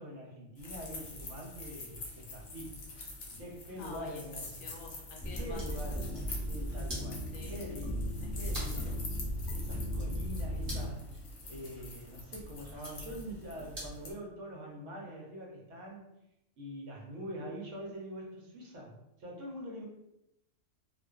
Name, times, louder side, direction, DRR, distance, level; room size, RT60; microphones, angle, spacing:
voice 1, 0.0-2.8 3.4-4.5 5.3-9.0 9.5-11.0 11.5-16.1 16.6-19.8, equal, 70° right, -2 dB, 1.0 m, -44 dB
sound 1, 0.5-14.1, left 2 dB, 60° left, 0.7 m, -46 dB
voice 2, 3.8-4.2 4.6-6.0 7.3-9.2, left 4 dB, 85° left, 0 dB, 1.0 m, -50 dB
sound 2, 5.2-10.9, equal, 5° left, 1.1 m, -36 dB
sound 3, 5.3-14.1, equal, 45° right, 1.1 m, -50 dB
2.4 x 2.3 x 2.3 m, 0.86 s
omnidirectional pair, 1.4 m